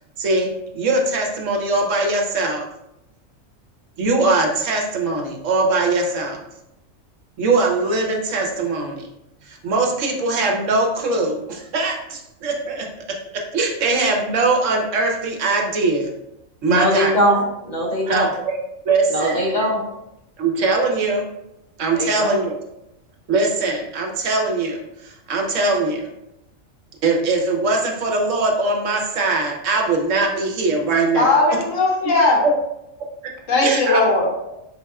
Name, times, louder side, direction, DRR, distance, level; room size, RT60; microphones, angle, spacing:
voice 1, 0.2-2.6 4.0-6.4 7.4-9.1 9.5-12.8 13.5-16.1 16.6-17.1 18.1-18.3 18.8-19.4 20.4-21.2 21.8-22.5 23.3-26.1 27.0-31.3 32.4-32.5 33.6-34.0, right 3 dB, 70° right, 1 dB, 1.1 m, -21 dB
voice 2, 16.7-18.3 19.1-19.8 21.9-22.4, equal, 35° left, -4 dB, 1.1 m, -21 dB
voice 3, 31.2-32.4 33.5-34.3, left 2 dB, 75° left, -2 dB, 1.3 m, -17 dB
4.3 x 4.1 x 2.3 m, 0.86 s
omnidirectional pair, 1.4 m